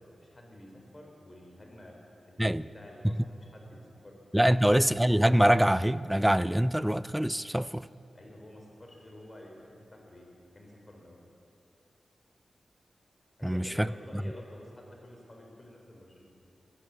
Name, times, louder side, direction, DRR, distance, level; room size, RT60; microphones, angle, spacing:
voice 1, 0.1-1.9 2.2-4.2 4.4-4.7 8.1-9.6 9.9-11.2 13.4-16.2, left 1 dB, 35° left, 0 dB, 4.0 m, -50 dB
voice 2, 4.3-7.9 13.4-13.9 14.1-14.2, equal, 5° right, 17 dB, 0.4 m, -24 dB
16.0 x 9.9 x 8.2 m, 2.6 s
cardioid pair, 60°, 0 cm